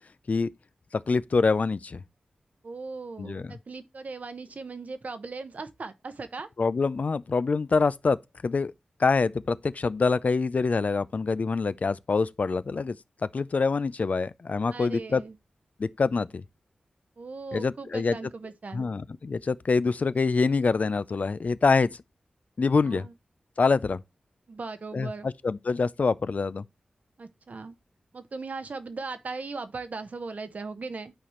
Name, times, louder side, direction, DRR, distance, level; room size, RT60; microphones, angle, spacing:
voice 1, 0.9-2.0 3.2-3.6 6.6-8.2 8.4-8.7 9.0-13.0 13.3-15.2 15.8-16.4 17.5-18.2 18.7-22.0 22.6-23.1 23.6-24.0 24.9-26.6, left 4 dB, 55° left, 0.4 m, -25 dB
voice 2, 2.6-6.5 14.7-15.4 17.2-18.9 22.8-23.1 24.5-25.3 27.2-27.8 28.1-31.1, right 4 dB, 60° right, 0.9 m, -38 dB
11.0 x 4.3 x 3.0 m
cardioid pair, 45°, 3 cm